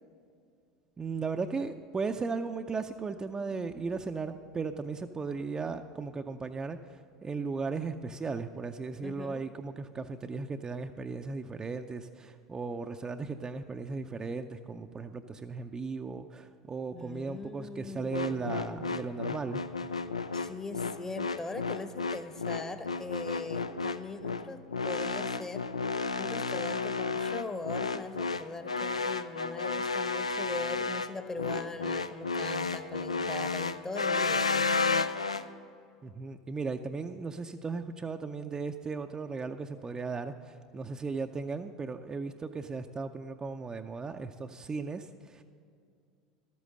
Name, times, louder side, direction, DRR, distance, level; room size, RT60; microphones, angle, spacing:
voice 1, 1.0-19.6 36.0-45.4, right 4 dB, 20° right, 6 dB, 0.5 m, -36 dB
voice 2, 9.0-9.5 16.9-19.1 20.3-25.7 26.2-34.9, left 3 dB, 15° left, 9 dB, 0.9 m, -41 dB
sound 1, 18.1-35.4, left 4 dB, 90° left, 0.4 m, -32 dB
12.5 x 8.4 x 6.4 m, 2.3 s
figure-of-eight pair, 80°, 3 cm